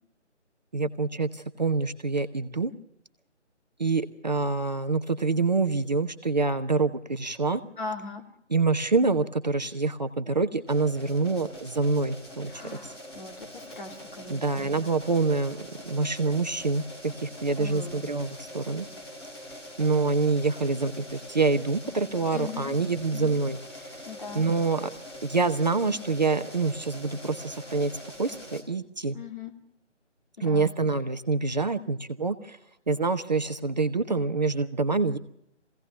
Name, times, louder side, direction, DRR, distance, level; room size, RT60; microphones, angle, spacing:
voice 1, 0.7-2.7 3.8-7.6 8.5-12.5 12.8-12.9 14.3-18.9 19.8-23.6 23.9-24.0 24.3-24.9 25.2-27.9 28.2-29.2 30.4-32.6 32.9-35.2, right 3 dB, 35° right, 9 dB, 0.9 m, -26 dB
voice 2, 7.8-8.2 12.5-14.7 17.6-18.1 22.3-22.8 23.1-23.4 24.0-24.5 29.1-29.5 30.4-30.6, left 4 dB, 45° left, 2 dB, 3.2 m, -39 dB
sound 1, 10.7-28.6, left 1 dB, 5° left, 1.5 m, -44 dB
23.5 x 17.0 x 7.1 m, 0.76 s
figure-of-eight pair, 150°, 36 cm